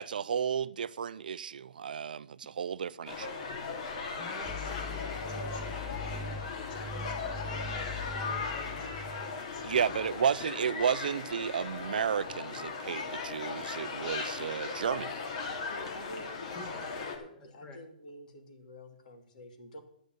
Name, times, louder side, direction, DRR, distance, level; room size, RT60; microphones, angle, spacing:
voice 1, 0.0-3.3 9.6-15.1, right 7 dB, 70° right, 0.5 m, -32 dB
sound 1, 3.1-17.2, left 4 dB, 45° left, 2.5 m, -38 dB
voice 2, 4.1-7.7 8.1-9.6 16.6-16.8 17.3-17.8, left 3 dB, 20° left, 1.8 m, -49 dB
sound 2, 4.5-10.4, left 2 dB, ahead, 0.4 m, -42 dB
voice 3, 15.5-19.8, left 1 dB, 60° left, 2.5 m, -49 dB
11.5 x 6.6 x 7.9 m
hypercardioid pair, 160°, 5 cm